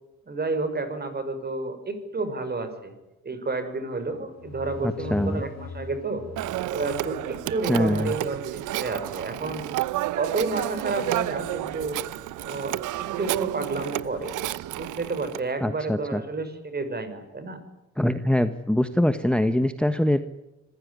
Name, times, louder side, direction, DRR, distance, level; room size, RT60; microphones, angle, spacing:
voice 1, 0.3-2.9 3.2-6.2 6.7-9.7 10.2-12.0 12.4-14.3 14.7-17.6, right 3 dB, 30° right, 10 dB, 5.6 m, -30 dB
sound 1, 4.1-7.7, left 4 dB, 60° left, 2.6 m, -41 dB
voice 2, 4.8-5.4 7.7-8.1 15.6-16.2 18.0-20.2, left 1 dB, 5° left, 10 dB, 1.3 m, -23 dB
Telephone, 6.4-15.4, right 15 dB, 85° right, 0.8 m, -31 dB
26.5 x 16.0 x 9.6 m, 1.0 s
cardioid pair, 90°, 30 cm